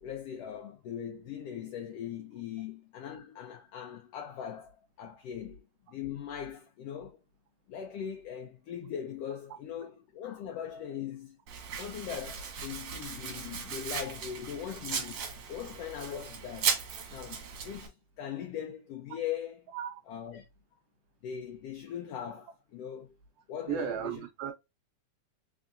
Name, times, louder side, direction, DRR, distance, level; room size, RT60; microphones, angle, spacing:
voice 1, 0.0-7.2 7.7-11.4 11.7-16.7 17.1-19.6 20.1-20.4 21.2-23.1 23.5-24.2, left 9 dB, 75° left, 1.5 m, -40 dB
Domestic sounds home sounds, 11.5-17.9, right 6 dB, 60° right, 1.6 m, -37 dB
voice 2, 23.7-24.5, right 8 dB, 85° right, 1.4 m, -34 dB
4.1 x 3.6 x 2.4 m
omnidirectional pair, 3.3 m